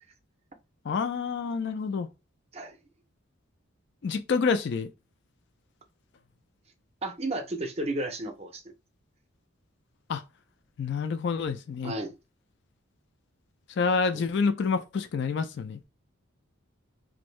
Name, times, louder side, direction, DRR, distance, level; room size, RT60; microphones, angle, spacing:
voice 1, 0.9-2.1 4.0-4.9 10.1-10.2 10.8-11.9 13.8-15.8, left 5 dB, 55° left, 0.4 m, -28 dB
voice 2, 7.0-8.7 11.8-12.1 14.1-14.2, right 2 dB, 30° right, 0.5 m, -33 dB
2.6 x 2.6 x 3.1 m
head